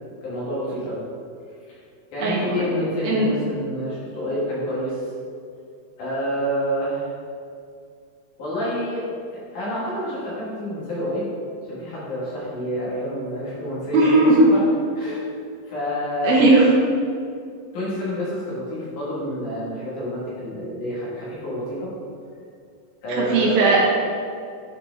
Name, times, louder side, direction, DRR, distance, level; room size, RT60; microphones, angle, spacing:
voice 1, 0.2-1.0 1.7-1.8 2.1-5.0 6.0-7.1 8.4-9.0 9.3-11.3 11.7-14.2 14.5-14.7 14.9-15.3 15.7-16.4 17.7-21.9 23.0-23.6, equal, 60° left, -8 dB, 2.8 m, -28 dB
voice 2, 13.9-14.4 16.2-16.7 23.3-23.8, right 3 dB, 75° right, -4 dB, 2.9 m, -17 dB
9.9 x 4.8 x 3.5 m, 2.3 s
omnidirectional pair, 4.4 m